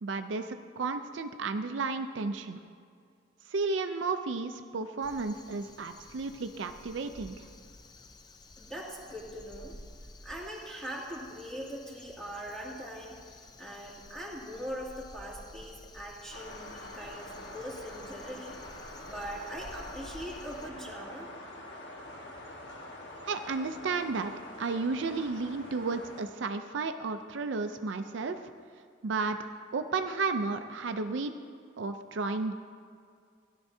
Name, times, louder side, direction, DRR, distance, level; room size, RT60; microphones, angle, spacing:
voice 1, 0.0-2.6 3.5-7.5 23.2-24.3 24.6-28.4 29.0-29.4 29.7-31.3 31.8-32.5, right 4 dB, 70° right, 8 dB, 0.5 m, -33 dB
Crow, 5.0-20.7, left 2 dB, 20° left, 0.5 m, -52 dB
voice 2, 8.6-9.8 10.2-18.5 19.1-21.3, equal, ahead, -6 dB, 2.3 m, -41 dB
sound 1, 16.3-26.2, left 1 dB, 65° left, 1.4 m, -45 dB
16.5 x 11.5 x 2.7 m, 2.3 s
head